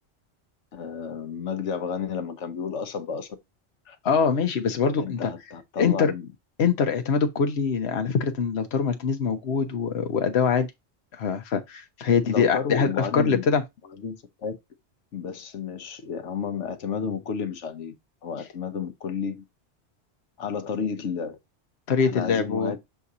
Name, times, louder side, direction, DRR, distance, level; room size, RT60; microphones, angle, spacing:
voice 1, 0.7-3.3 3.9-4.0 5.0-6.3 12.2-13.5 14.0-14.6 15.1-17.9 18.2-19.4 20.4-21.4 22.0-22.8, left 6 dB, 90° left, 1.2 m, -31 dB
voice 2, 4.0-5.3 5.8-6.1 6.6-10.7 11.1-13.6 21.9-22.7, left 6 dB, 65° left, 1.1 m, -23 dB
6.9 x 2.8 x 4.8 m
omnidirectional pair, 1.2 m